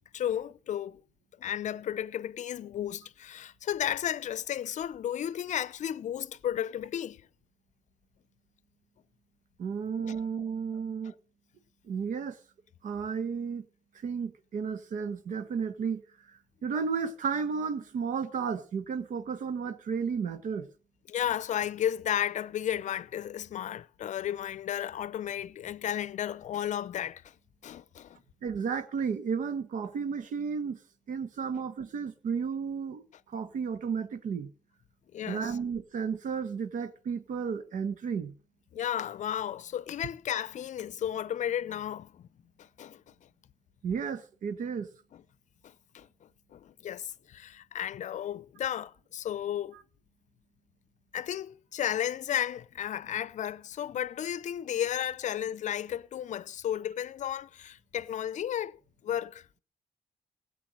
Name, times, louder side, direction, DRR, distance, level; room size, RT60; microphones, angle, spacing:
voice 1, 0.1-1.0 1.4-7.2 10.1-10.2 21.1-27.3 27.6-28.2 35.1-35.6 38.7-42.3 42.6-43.0 45.6-46.1 46.5-49.7 51.1-58.8 59.0-59.5, left 10 dB, 60° left, 0.6 m, -33 dB
voice 2, 9.6-11.1 11.9-12.4 12.8-13.7 14.0-16.0 16.6-20.7 28.4-30.8 31.1-34.5 35.3-38.3 43.8-44.9 49.7-49.8, right 6 dB, 70° right, 1.3 m, -33 dB
16.0 x 8.0 x 6.3 m
cardioid pair, 70°, 14 cm